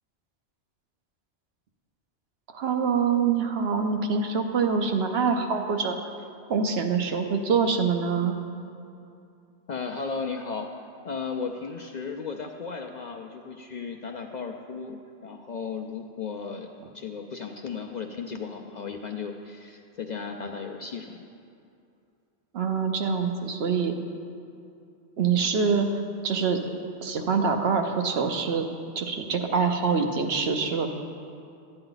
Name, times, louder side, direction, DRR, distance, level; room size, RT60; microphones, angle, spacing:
voice 1, 2.5-6.0 6.5-8.4 22.5-23.9 25.2-25.9 26.2-26.6 27.0-28.7 29.0-30.9, right 5 dB, 65° right, 5 dB, 1.0 m, -25 dB
voice 2, 9.7-10.7 11.0-21.3, left 5 dB, 55° left, 2 dB, 0.5 m, -35 dB
11.5 x 8.8 x 3.9 m, 2.5 s
omnidirectional pair, 1.1 m